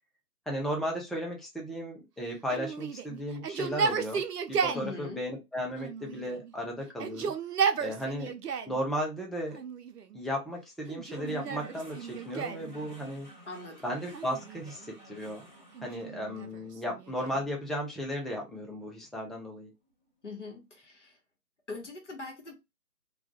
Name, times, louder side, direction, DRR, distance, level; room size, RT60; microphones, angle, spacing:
voice 1, 0.5-4.2 4.5-7.3 7.8-8.3 8.7-9.6 10.1-13.3 13.8-15.5 15.8-19.7, equal, ahead, -1 dB, 0.4 m, -35 dB
Yell, 2.5-4.9 5.8-6.5 6.9-8.8 9.5-10.2 10.9-12.7 14.1-14.9 15.7-17.5, right 6 dB, 80° right, 0.6 m, -34 dB
voice 2, 4.7-5.2 13.5-13.8 20.2-21.2 21.7-22.5, left 3 dB, 50° left, 2 dB, 0.8 m, -42 dB
sound 1, 11.1-19.5, right 2 dB, 30° right, 0.7 m, -53 dB
2.3 x 2.2 x 2.9 m, 0.23 s
figure-of-eight pair, 165°, 47 cm